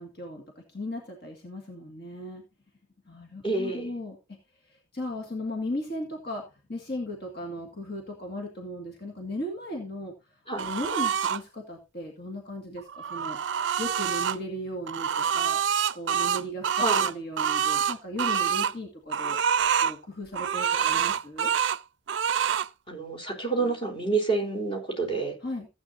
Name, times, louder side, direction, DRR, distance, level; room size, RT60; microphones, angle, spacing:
voice 1, 0.0-2.4 3.1-4.2 4.6-13.4 13.8-15.6 15.9-19.4 19.8-21.5 25.4-25.7, left 1 dB, 50° left, 2.1 m, -36 dB
voice 2, 3.4-3.9 10.5-10.7 16.8-17.1 20.8-20.9 22.9-25.3, right 3 dB, 25° left, 3.8 m, -28 dB
sound 1, 10.6-11.4 12.8-14.4 14.9-18.7 19.1-19.9 20.3-21.8 22.1-22.7, right 7 dB, 60° right, 0.4 m, -26 dB
15.5 x 8.7 x 2.7 m
head